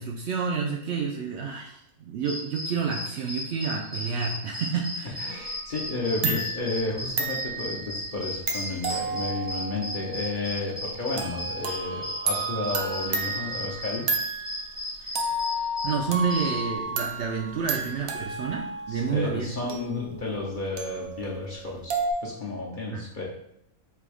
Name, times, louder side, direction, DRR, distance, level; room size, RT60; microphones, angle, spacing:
voice 1, 0.0-5.3 6.2-6.4 15.0-15.2 15.8-19.5 22.9-23.0, right 5 dB, 65° right, 0 dB, 0.7 m, -29 dB
sound 1, 2.2-16.6, left 1 dB, 30° right, 0.5 m, -36 dB
voice 2, 5.0-14.1 18.9-21.9 22.2-23.2, left 3 dB, 45° left, -3 dB, 0.8 m, -32 dB
sound 2, 5.3-6.0 6.2-14.8 15.1-22.1, right 3 dB, 80° right, 1.1 m, -32 dB
3.4 x 2.9 x 4.7 m, 0.76 s
omnidirectional pair, 1.5 m